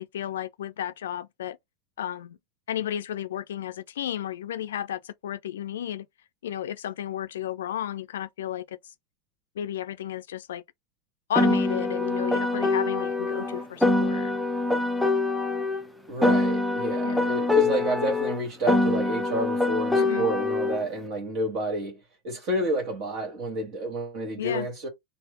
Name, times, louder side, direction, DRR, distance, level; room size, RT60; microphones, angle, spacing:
voice 1, 0.0-1.6 2.0-2.4 2.7-6.1 6.4-8.9 9.6-10.6 11.3-14.3 17.0-17.3 20.0-20.3 24.4-24.7, left 11 dB, 75° left, 0.4 m, -33 dB
Piano, 11.3-15.8 16.2-20.8, left 2 dB, ahead, 0.6 m, -24 dB
voice 2, 16.1-24.9, right 1 dB, 50° right, 1.5 m, -29 dB
3.4 x 2.0 x 3.5 m
hypercardioid pair, 100°, 0 cm